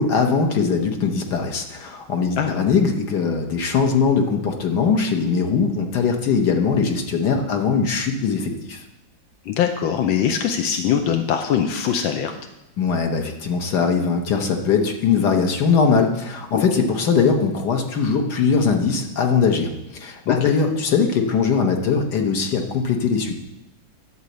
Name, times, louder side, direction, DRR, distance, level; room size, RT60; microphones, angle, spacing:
voice 1, 0.0-8.8 12.8-23.3, left 5 dB, 60° left, 3 dB, 1.6 m, -21 dB
voice 2, 9.4-12.4 16.5-16.6 20.3-20.4, left 8 dB, 85° left, 5 dB, 1.5 m, -22 dB
11.5 x 4.1 x 7.9 m, 0.92 s
omnidirectional pair, 2.1 m